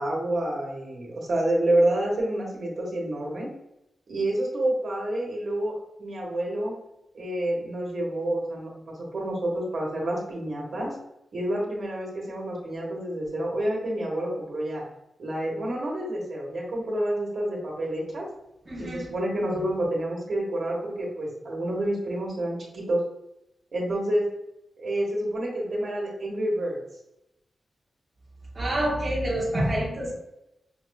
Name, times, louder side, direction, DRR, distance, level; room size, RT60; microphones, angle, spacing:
voice 1, 0.0-3.5 4.1-5.7 6.0-6.7 7.1-10.9 11.3-14.8 15.2-18.3 18.8-23.0 23.7-24.3 24.8-26.8, right 1 dB, 60° right, -2 dB, 1.2 m, -28 dB
voice 2, 18.7-19.1 28.5-30.1, right 1 dB, 25° right, -5 dB, 0.8 m, -27 dB
5.6 x 2.4 x 2.2 m, 0.86 s
wide cardioid pair, 145°, 0 cm